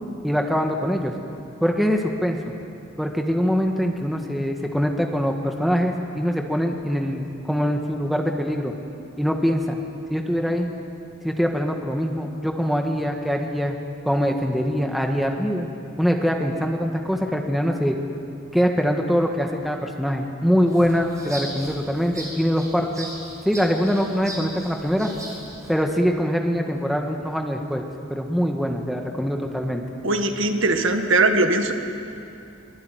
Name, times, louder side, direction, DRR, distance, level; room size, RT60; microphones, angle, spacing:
voice 1, 0.2-1.1 1.6-2.4 3.0-8.7 9.2-9.8 10.1-10.7 11.2-13.7 14.0-15.7 16.0-18.0 18.5-23.1 23.4-25.1 25.7-27.8 28.1-29.8, equal, ahead, 2 dB, 1.6 m, -23 dB
sound 1, 20.7-25.7, right 1 dB, 15° right, 4.2 m, -38 dB
voice 2, 30.0-31.7, right 2 dB, 75° right, 5 dB, 1.8 m, -20 dB
24.0 x 21.5 x 9.3 m, 2.6 s
head